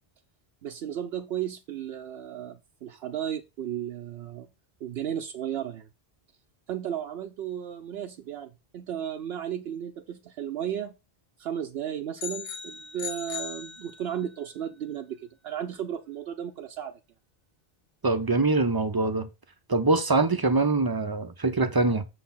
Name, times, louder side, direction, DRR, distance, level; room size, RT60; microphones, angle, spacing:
voice 1, 0.6-4.5 4.8-5.9 6.7-10.9 11.4-17.0, right 10 dB, 75° right, 0.8 m, -34 dB
sound 1, 12.2-14.4, left 6 dB, 75° left, 1.4 m, -38 dB
voice 2, 18.0-19.3 19.7-22.0, right 3 dB, 25° right, 0.5 m, -24 dB
6.8 x 4.2 x 5.6 m
omnidirectional pair, 1.0 m